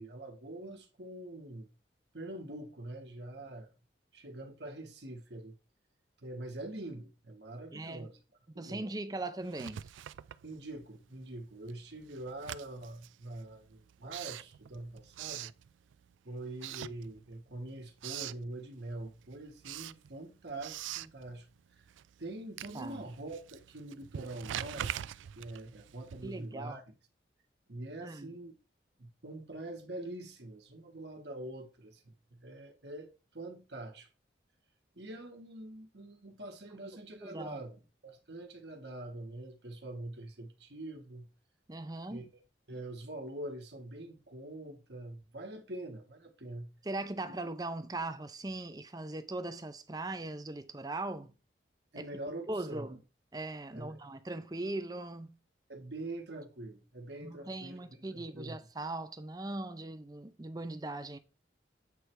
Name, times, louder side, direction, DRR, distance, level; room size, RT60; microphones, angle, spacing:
voice 1, 0.0-1.7 2.1-3.7 4.1-5.5 6.2-8.2 8.5-8.9 10.4-15.5 16.2-21.5 22.2-26.9 27.7-28.5 29.0-32.0 32.3-34.1 34.9-41.3 42.1-42.2 42.7-46.7 51.9-52.9 53.7-54.0 55.7-57.8 58.1-58.5, right 2 dB, 65° right, 1.5 m, -44 dB
voice 2, 7.7-8.1 8.6-9.9 22.7-23.0 26.2-26.8 28.0-28.3 37.2-37.6 41.7-42.3 46.8-51.3 51.9-52.1 52.5-53.0 53.3-55.4 57.2-61.2, right 2 dB, 20° right, 0.5 m, -39 dB
Writing, 9.4-11.0 11.3-16.1 16.5-17.5 17.8-18.5 18.9-26.5, right 11 dB, 90° right, 0.3 m, -44 dB
8.2 x 3.3 x 4.6 m
head